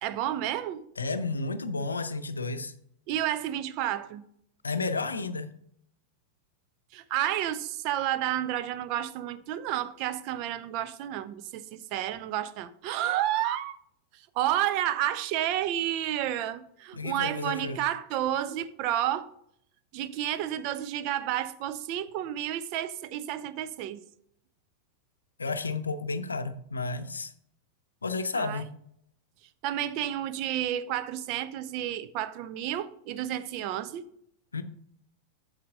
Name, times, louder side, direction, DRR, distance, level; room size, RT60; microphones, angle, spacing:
voice 1, 0.0-0.8 3.1-4.2 6.9-13.8 14.1-19.3 19.9-24.0 28.3-28.6 29.6-34.0, right 12 dB, 45° right, 0.6 m, -31 dB
voice 2, 1.0-2.7 4.6-5.5 16.9-17.8 25.4-27.3 28.0-28.7 34.5-34.6, left 3 dB, 75° left, 0.6 m, -32 dB
8.6 x 6.4 x 3.8 m
figure-of-eight pair, 90°, 0 cm